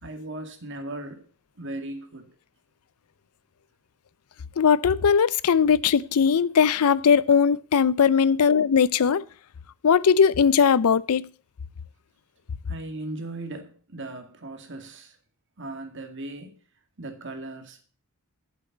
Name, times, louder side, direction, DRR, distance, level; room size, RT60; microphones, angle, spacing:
voice 1, 0.0-1.3 1.6-2.4 12.7-15.2 15.6-16.6 17.0-17.8, right 2 dB, 55° right, 2.1 m, -37 dB
voice 2, 4.6-9.2 9.8-11.3, left 6 dB, 80° left, 0.5 m, -19 dB
7.8 x 7.5 x 8.3 m
head